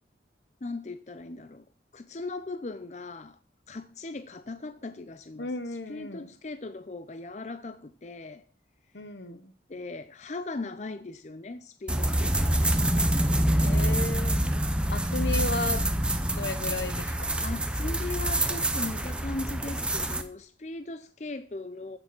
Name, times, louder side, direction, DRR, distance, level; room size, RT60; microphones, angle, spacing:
voice 1, 0.6-1.6 1.9-3.4 3.7-5.5 5.9-8.4 9.7-12.9 17.4-22.0, left 3 dB, 40° left, 0.5 m, -38 dB
voice 2, 5.4-6.3 8.9-9.5 13.6-14.4 14.9-15.8 16.3-17.3, left 3 dB, 75° left, 1.3 m, -34 dB
sound 1, 11.9-20.2, right 1 dB, 5° right, 0.7 m, -26 dB
14.0 x 6.8 x 6.0 m
head